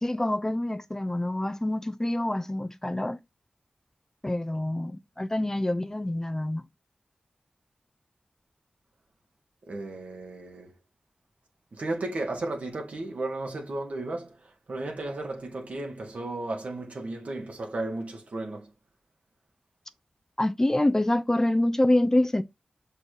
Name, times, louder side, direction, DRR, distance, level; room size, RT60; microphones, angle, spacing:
voice 1, 0.0-3.2 4.2-6.6 20.4-22.4, left 1 dB, 20° left, 0.6 m, -26 dB
voice 2, 9.7-10.7 11.7-14.3 14.7-18.7, right 2 dB, 75° right, 1.8 m, -34 dB
6.6 x 4.0 x 3.9 m
wide cardioid pair, 70°, 2 cm